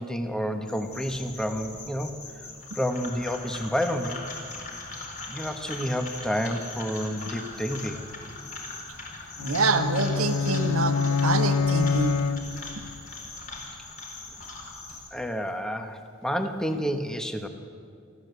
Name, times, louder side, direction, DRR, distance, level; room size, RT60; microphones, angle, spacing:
voice 1, 0.0-4.3 5.3-8.1 15.1-17.5, equal, 5° left, 6 dB, 1.3 m, -30 dB
sound 1, 0.7-15.1, left 3 dB, 55° left, 3.2 m, -44 dB
sound 2, 2.5-14.9, left 2 dB, 35° left, 4.3 m, -42 dB
sound 3, 9.4-12.9, left 5 dB, 75° left, 0.5 m, -26 dB
voice 2, 9.4-12.2 12.8-12.9, right 3 dB, 85° right, 7 dB, 1.7 m, -26 dB
29.0 x 13.0 x 8.3 m, 2.3 s
head